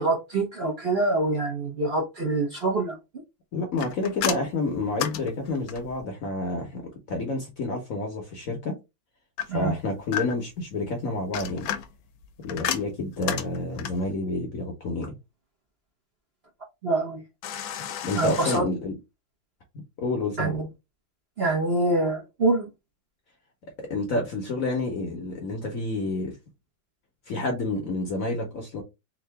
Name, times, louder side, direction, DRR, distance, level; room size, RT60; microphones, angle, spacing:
voice 1, 0.0-3.0 9.5-9.7 16.8-17.2 18.2-18.6 20.4-20.7 21.4-22.7, right 2 dB, 40° right, 1.0 m, -25 dB
voice 2, 3.5-8.8 9.5-11.7 12.4-15.1 18.0-19.0 20.0-20.5 23.8-26.4 27.3-28.8, left 2 dB, 55° left, 1.1 m, -29 dB
sound 1, 3.8-6.0 9.4-10.6 11.1-14.1 17.4-18.6, left 10 dB, 85° left, 1.4 m, -33 dB
3.7 x 2.7 x 3.3 m
omnidirectional pair, 2.1 m